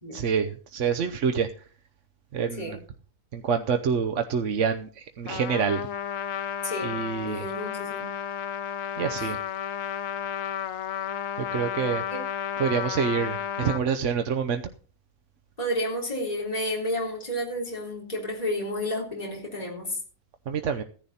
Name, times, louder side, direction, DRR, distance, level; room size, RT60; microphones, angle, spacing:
voice 1, 0.1-1.5 2.3-2.8 3.3-5.9 6.8-7.5 9.0-9.4 11.5-12.0 12.6-14.6 20.5-20.8, right 6 dB, 65° right, 6 dB, 1.1 m, -27 dB
Trumpet, 5.3-13.8, left 9 dB, 80° left, 1.1 m, -32 dB
voice 2, 6.6-6.9 7.2-8.1 9.2-9.3 12.1-12.2 15.6-20.0, left 1 dB, 30° left, -2 dB, 3.7 m, -31 dB
15.5 x 10.5 x 4.2 m, 0.42 s
omnidirectional pair, 1.4 m